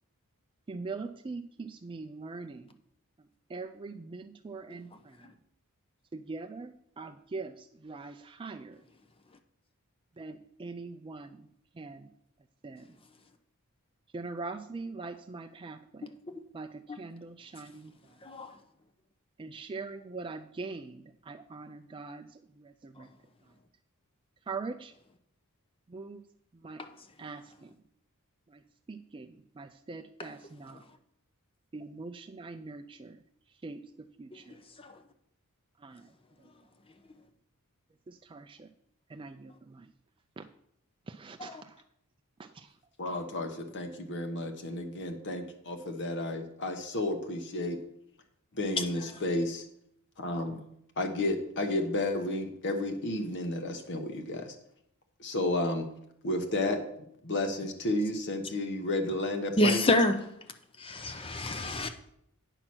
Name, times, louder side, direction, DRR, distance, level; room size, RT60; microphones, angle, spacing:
voice 1, 0.7-2.7 3.5-5.2 6.1-8.8 10.2-11.4 11.8-12.1 12.6-12.9 14.1-16.1 16.5-17.9 19.4-22.3 22.6-23.1 24.5-24.9 25.9-26.2 26.6-26.8 27.2-27.7 28.9-29.3 29.6-30.8 31.7-33.2 33.6-33.8 34.2-34.6 35.8-36.0 38.1-38.7 39.1-39.9 40.4-40.5 41.1-41.7 42.4-42.7, right 3 dB, 25° right, 0.4 m, -42 dB
voice 2, 18.2-18.5 41.4-41.6 59.6-60.2 60.8-61.9, left 1 dB, 25° left, 0.6 m, -27 dB
voice 3, 43.0-47.8 48.6-49.6 50.2-50.6 51.0-54.5 55.2-55.9 56.2-56.8 57.2-59.8, left 1 dB, 55° left, 1.1 m, -32 dB
9.0 x 5.8 x 6.1 m
head